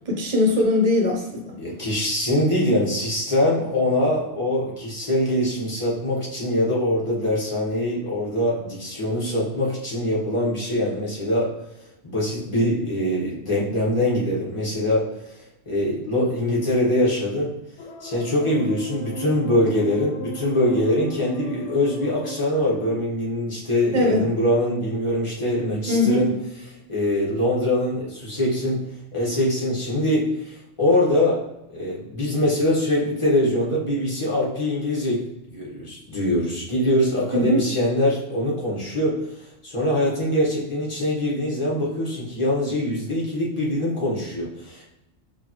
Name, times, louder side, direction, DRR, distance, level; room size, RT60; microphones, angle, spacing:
voice 1, 0.1-1.6 23.9-24.3 25.9-26.3 37.3-37.6, left 2 dB, 40° right, 0 dB, 0.8 m, -20 dB
voice 2, 1.6-11.5 12.0-15.4 15.7-17.5 18.0-26.3 26.9-28.8 29.1-31.4 31.7-44.8, left 1 dB, 30° left, -5 dB, 1.1 m, -23 dB
sound 1, 17.8-23.0, right 1 dB, 85° left, 0.9 m, -36 dB
4.9 x 2.3 x 2.9 m, 0.88 s
omnidirectional pair, 1.2 m